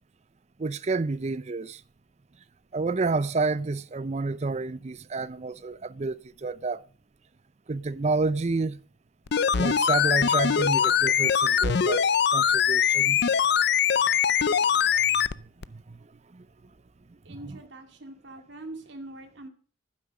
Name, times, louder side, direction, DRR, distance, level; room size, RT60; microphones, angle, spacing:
voice 1, 0.6-1.8 2.7-6.8 7.7-8.8 9.6-12.0 12.3-13.2 15.9-16.0 16.3-16.4, right 3 dB, 35° right, 0.5 m, -29 dB
sound 1, 9.3-15.3 15.6-15.7, left 7 dB, 60° left, 0.5 m, -22 dB
voice 2, 17.2-19.5, right 2 dB, 65° right, 2.3 m, -43 dB
12.0 x 9.7 x 6.5 m
head